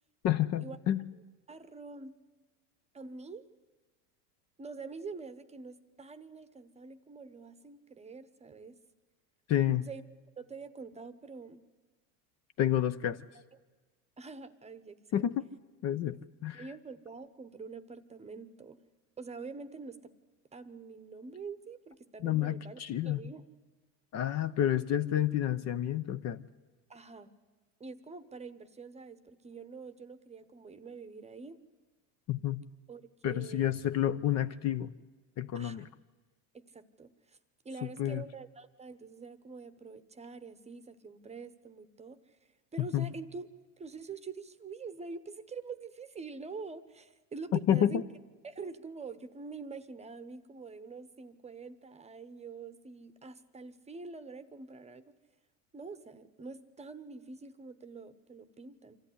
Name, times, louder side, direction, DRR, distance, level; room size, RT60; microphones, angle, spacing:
voice 1, 0.2-1.0 9.5-9.9 12.6-13.3 15.1-15.5 15.8-16.7 22.2-23.2 24.1-26.5 32.3-32.6 33.2-34.9 35.4-35.9 37.8-38.2 42.8-43.1 47.7-48.0, left 11 dB, 40° left, 13 dB, 0.7 m, -30 dB
voice 2, 1.5-2.2 2.9-3.5 4.6-8.8 9.9-10.0 10.4-11.6 14.2-15.2 16.5-18.8 19.2-20.1 20.5-23.4 26.9-27.3 27.8-31.6 32.9-33.7 35.5-35.8 36.5-37.4 37.6-42.2 42.7-43.5 43.8-48.0 48.4-55.1 55.7-59.0, right 4 dB, 15° right, 13 dB, 0.9 m, -45 dB
25.5 x 14.0 x 10.0 m, 1.3 s
supercardioid pair, 120°, 43 cm